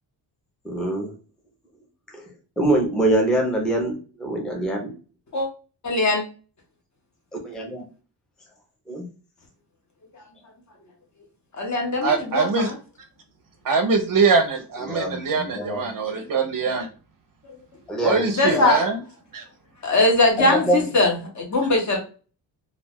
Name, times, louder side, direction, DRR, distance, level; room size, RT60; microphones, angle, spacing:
voice 1, 0.6-1.1 2.1-2.2 2.6-4.9 7.4-7.8 8.9-9.1 14.8-15.9 17.9-18.2 18.5-18.7 20.4-20.9, right 1 dB, ahead, 0 dB, 0.5 m, -24 dB
voice 2, 5.8-6.2 11.6-12.8 18.3-18.8 19.8-22.0, left 2 dB, 40° left, 1 dB, 0.8 m, -21 dB
voice 3, 12.0-12.7 13.6-16.9 18.0-19.0 19.3-19.4, right 4 dB, 50° right, 6 dB, 0.5 m, -22 dB
2.4 x 2.2 x 3.3 m, 0.36 s
wide cardioid pair, 180°, 45 cm